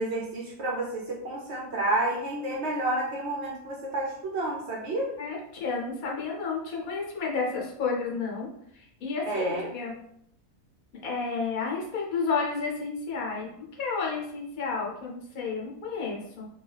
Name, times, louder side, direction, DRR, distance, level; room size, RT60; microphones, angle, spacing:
voice 1, 0.0-5.1 9.3-9.7, right 2 dB, 60° right, -2 dB, 0.8 m, -30 dB
voice 2, 5.2-8.5 8.7-9.9 11.0-13.5 13.8-16.5, left 4 dB, 75° left, -2 dB, 1.2 m, -31 dB
3.1 x 2.3 x 3.2 m, 0.73 s
omnidirectional pair, 1.5 m